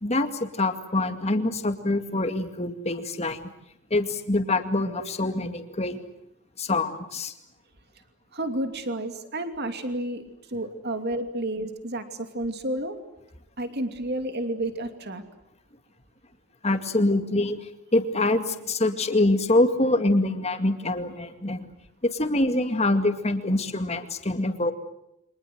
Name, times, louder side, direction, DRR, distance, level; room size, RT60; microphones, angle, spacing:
voice 1, 0.0-3.4 3.9-6.0 6.6-7.3 16.6-21.7 22.0-24.7, left 2 dB, 30° left, 7 dB, 2.2 m, -25 dB
voice 2, 8.3-13.0 13.6-15.2, right 1 dB, 45° right, 8 dB, 2.8 m, -31 dB
29.0 x 25.5 x 7.9 m, 0.83 s
head